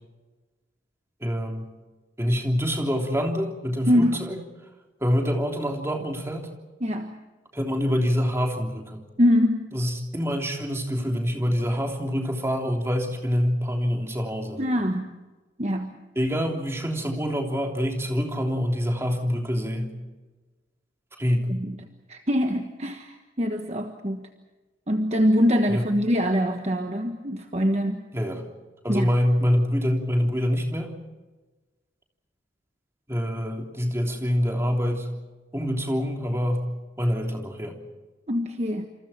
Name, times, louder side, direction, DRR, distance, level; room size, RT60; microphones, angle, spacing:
voice 1, 1.2-1.7 2.2-4.4 5.0-6.5 7.5-9.0 9.7-14.6 16.1-19.9 21.2-21.6 25.7-25.9 28.1-28.4 28.8-30.9 33.1-35.1 35.5-36.7 37.0-37.8, equal, 15° right, 2 dB, 3.3 m, -26 dB
voice 2, 3.9-4.2 6.8-7.1 9.2-9.7 14.6-15.1 15.6-15.9 21.5-21.8 22.1-24.3 24.9-28.0 28.9-29.1 38.3-38.9, equal, 35° right, 5 dB, 1.4 m, -24 dB
28.5 x 27.0 x 4.4 m, 1.2 s
head